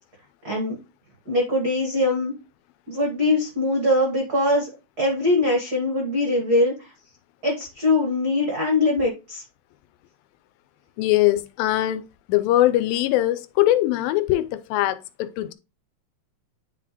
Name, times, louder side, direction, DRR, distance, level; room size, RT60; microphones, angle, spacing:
voice 1, 0.4-0.8 1.3-2.3 2.9-4.7 5.0-6.9 7.4-9.4, left 2 dB, 75° right, 0.9 m, -22 dB
voice 2, 11.0-15.5, left 15 dB, 85° left, 2.4 m, -22 dB
9.7 x 4.0 x 2.9 m
omnidirectional pair, 4.1 m